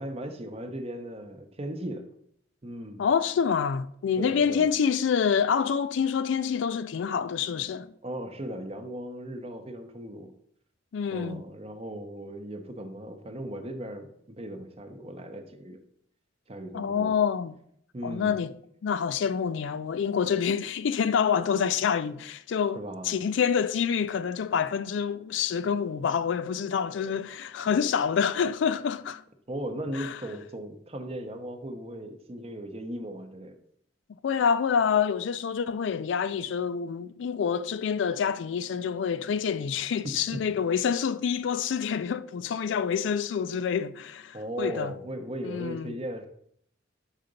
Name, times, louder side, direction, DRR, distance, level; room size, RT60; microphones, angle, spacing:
voice 1, 0.0-2.1 2.6-3.0 4.2-4.7 8.0-10.3 11.1-15.8 16.5-17.1 17.9-18.4 22.7-23.2 27.0-27.2 29.5-33.6 40.0-40.5 44.3-46.3, right 1 dB, 30° right, 0.7 m, -37 dB
voice 2, 3.0-7.9 10.9-11.4 16.7-17.5 18.0-18.5 18.8-29.2 29.9-30.2 34.2-44.9 45.4-46.0, left 7 dB, 70° left, 0.4 m, -27 dB
5.7 x 3.9 x 5.1 m
head